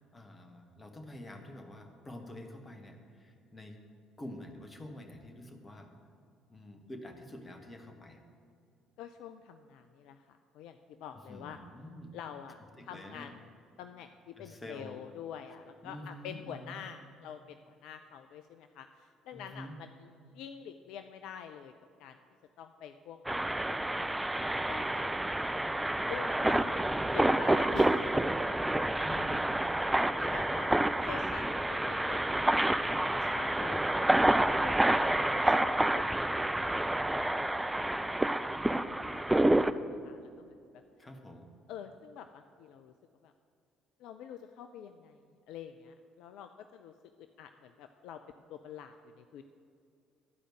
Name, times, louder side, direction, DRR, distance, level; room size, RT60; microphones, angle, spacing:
voice 1, 0.0-3.8 4.2-5.9 6.5-8.2 11.3-12.1 12.8-13.3 14.4-15.0 15.8-16.8 19.3-19.7 29.0-29.5 41.0-41.5, left 1 dB, 25° left, 5 dB, 1.3 m, -47 dB
voice 2, 9.0-11.6 12.1-13.4 13.8-21.7 22.0-22.2 22.6-24.2 24.5-25.5 26.1-26.7 27.1-28.1 30.2-30.7 31.1-34.1 34.6-36.1 36.3-38.3 38.8-39.2 39.5-40.8 41.7-42.9 43.2-43.3 44.0-45.2 45.5-48.2 48.5-49.4, left 8 dB, 60° left, 7 dB, 0.3 m, -47 dB
sound 1, 23.3-39.7, right 1 dB, 10° right, 0.4 m, -28 dB
11.0 x 4.9 x 7.6 m, 2.4 s
figure-of-eight pair, 50°, 0 cm